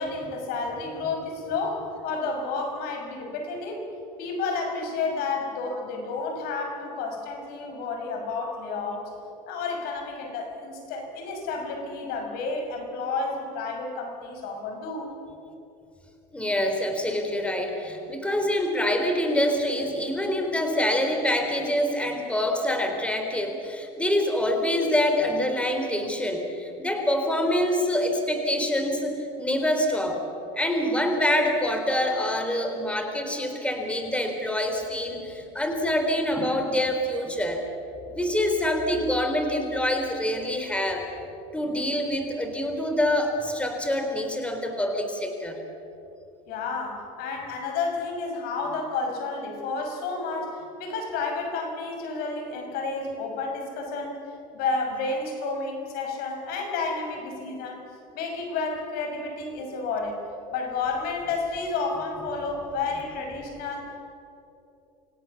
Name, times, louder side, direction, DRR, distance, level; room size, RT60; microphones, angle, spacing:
voice 1, 0.0-3.9 4.2-9.1 9.5-15.1 46.5-54.2 54.5-57.9 58.1-60.2 60.5-64.0, left 4 dB, 65° left, 3 dB, 6.0 m, -31 dB
voice 2, 16.3-30.2 30.6-37.6 38.1-41.1 41.5-45.6, left 1 dB, 5° left, 4 dB, 3.7 m, -26 dB
26.5 x 17.5 x 7.2 m, 3.0 s
supercardioid pair, 110°, 17 cm